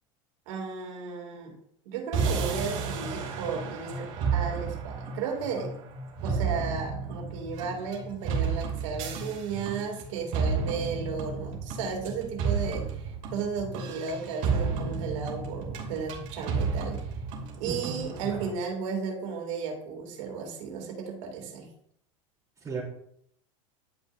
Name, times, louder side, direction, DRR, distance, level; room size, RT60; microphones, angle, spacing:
voice 1, 0.5-1.5 1.9-5.7 6.2-17.1 17.6-21.7, right 5 dB, 75° right, 1 dB, 2.5 m, -34 dB
sound 1, 2.1-18.5, right 5 dB, 55° right, 2.6 m, -32 dB
voice 2, 17.7-18.4 22.6-22.8, right 5 dB, 20° right, -9 dB, 3.0 m, -36 dB
11.0 x 5.3 x 2.6 m, 0.69 s
supercardioid pair, 110°, 17 cm